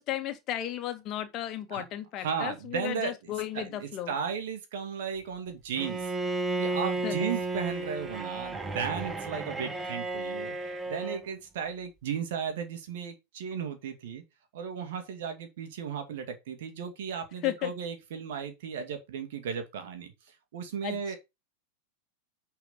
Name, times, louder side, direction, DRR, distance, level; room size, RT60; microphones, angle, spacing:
voice 1, 0.0-4.1 7.0-7.1 17.4-17.7 20.8-21.2, left 12 dB, 35° left, 2.0 m, -34 dB
voice 2, 2.2-6.1 6.6-14.2 14.5-21.2, right 7 dB, 55° right, 2.3 m, -35 dB
Bowed string instrument, 5.8-11.3, right 2 dB, 15° right, 1.6 m, -33 dB
10.0 x 4.7 x 5.3 m
figure-of-eight pair, 90°, 0 cm